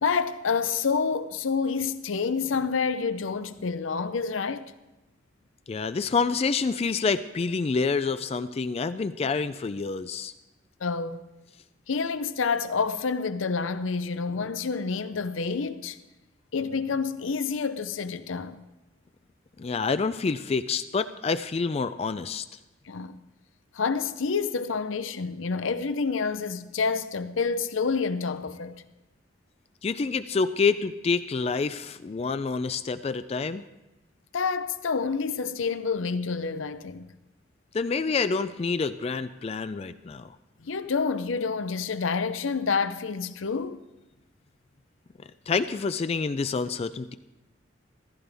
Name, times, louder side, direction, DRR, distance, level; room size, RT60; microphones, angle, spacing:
voice 1, 0.0-4.7 10.8-11.2 11.9-16.0 16.5-18.6 22.9-23.2 23.7-28.8 34.3-37.1 40.6-43.8, left 5 dB, 90° left, 0.6 m, -28 dB
voice 2, 5.7-10.3 19.6-22.5 29.8-33.6 37.7-40.3 45.5-47.2, left 4 dB, 30° left, 0.3 m, -27 dB
15.0 x 15.0 x 3.5 m
head